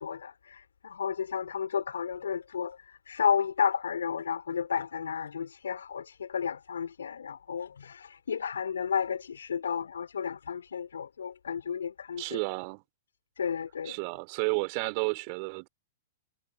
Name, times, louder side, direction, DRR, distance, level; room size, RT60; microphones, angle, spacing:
voice 1, 0.0-12.4 13.4-14.0, left 7 dB, 70° left, 3.9 m, -32 dB
voice 2, 12.2-12.8 13.8-15.7, right 38 dB, 40° right, 2.6 m, -32 dB
figure-of-eight pair, 105°, 0 cm